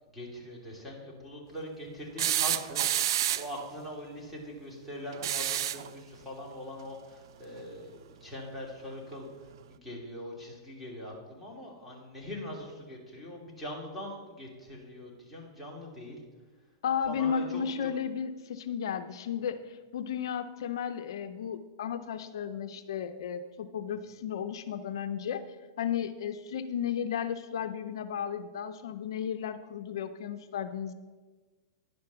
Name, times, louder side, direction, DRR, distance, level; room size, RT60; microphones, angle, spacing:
voice 1, 0.1-16.2 17.1-18.0, left 1 dB, ahead, -5 dB, 2.8 m, -42 dB
sound 1, 2.2-3.6 5.1-5.9 7.6-7.7 9.1-9.2, right 11 dB, 65° right, 0.4 m, -29 dB
voice 2, 16.8-25.4 25.8-30.9, left 8 dB, 70° left, 9 dB, 0.5 m, -34 dB
10.5 x 5.3 x 6.8 m, 1.3 s
hypercardioid pair, 135°, 2 cm